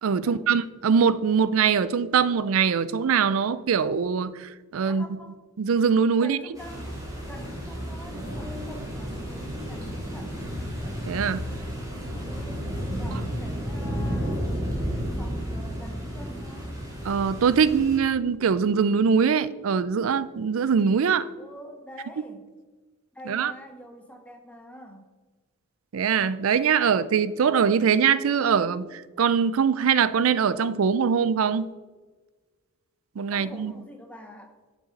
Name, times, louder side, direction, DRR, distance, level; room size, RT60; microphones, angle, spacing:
voice 1, 0.0-5.0 5.6-6.4 11.1-11.4 17.0-21.3 23.3-23.5 25.9-31.7 33.2-33.7, right 6 dB, 75° right, 0.4 m, -22 dB
voice 2, 4.9-5.4 6.1-6.9 7.2-10.6 12.2-16.8 21.4-22.5 23.1-25.1 33.3-34.6, equal, 5° left, 1.1 m, -45 dB
sound 1, 6.5-18.0, equal, 15° right, 2.8 m, -32 dB
7.8 x 6.4 x 5.3 m
head